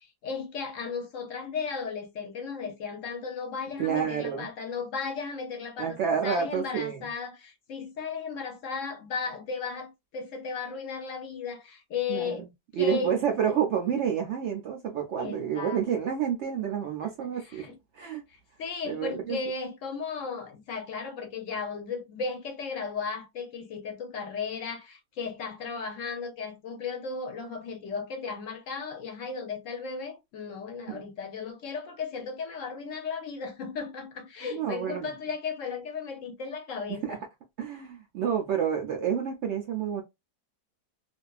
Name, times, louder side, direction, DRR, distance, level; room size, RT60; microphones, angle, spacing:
voice 1, 0.0-12.4 12.7-13.2 13.5-13.6 15.2-15.8 17.0-17.1 17.4-17.7 18.3-37.2, left 5 dB, 65° left, 0.8 m, -35 dB
voice 2, 3.8-4.5 5.8-7.0 12.1-12.5 12.8-17.7 17.9-18.2 18.8-19.4 30.9-31.0 34.5-35.1 37.0-37.2 37.6-40.0, right 8 dB, 80° right, 0.6 m, -29 dB
2.6 x 2.3 x 2.3 m
omnidirectional pair, 1.7 m